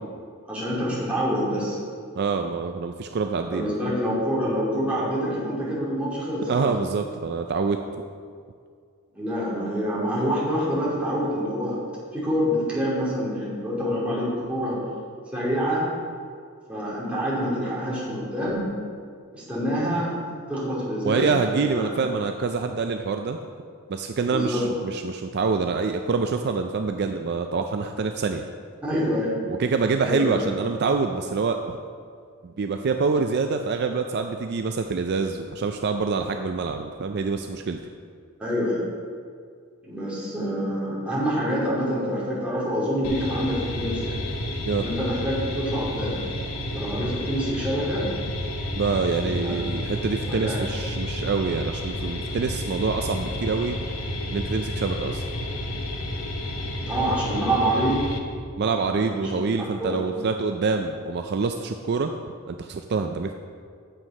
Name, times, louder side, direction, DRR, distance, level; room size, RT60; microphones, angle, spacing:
voice 1, 0.5-1.8 3.5-6.7 9.1-11.8 12.1-14.8 15.3-15.8 16.7-18.7 19.3-20.1 20.5-22.1 24.3-24.6 28.8-29.4 30.0-30.4 38.4-38.8 39.8-44.2 44.8-46.2 46.7-48.0 49.2-49.6 50.2-50.6 56.9-58.1 58.7-60.0, equal, 5° right, -8 dB, 2.9 m, -26 dB
voice 2, 2.1-3.9 6.4-7.8 21.0-23.4 23.9-28.4 29.6-31.8 32.4-37.8 44.7-44.9 48.8-53.8 54.3-55.3 58.6-62.1 62.5-63.3, right 4 dB, 50° right, 5 dB, 0.4 m, -26 dB
sound 1, 43.0-58.2, left 1 dB, 80° left, 1.1 m, -31 dB
8.9 x 7.7 x 5.3 m, 2.2 s
head